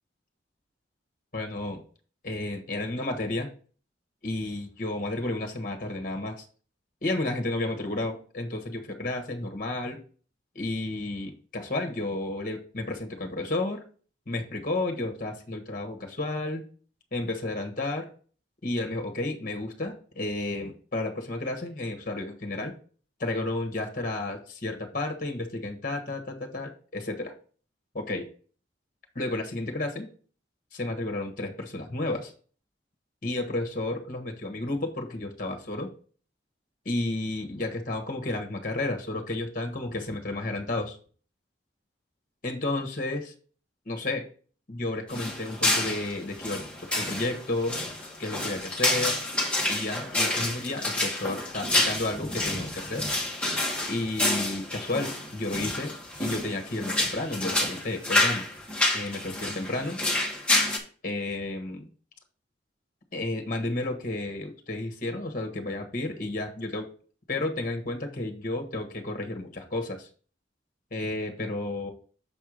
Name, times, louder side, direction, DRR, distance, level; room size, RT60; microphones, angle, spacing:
voice 1, 1.3-1.8 2.2-3.5 4.2-6.4 7.0-10.0 10.5-13.8 14.3-16.6 17.1-18.1 18.6-22.7 23.2-27.3 27.9-28.3 29.1-30.1 30.7-32.3 33.2-35.9 36.8-41.0 42.4-43.3 43.8-44.3 44.7-46.6 46.9-47.8 48.2-49.2 49.7-53.0 53.9-58.4 58.9-60.0 61.0-61.9 63.1-66.9 67.3-70.1 70.9-71.9, left 2 dB, 45° left, 3 dB, 1.3 m, -32 dB
sound 1, 45.1-60.8, left 2 dB, 5° left, 1.5 m, -28 dB
7.1 x 4.5 x 5.0 m, 0.41 s
head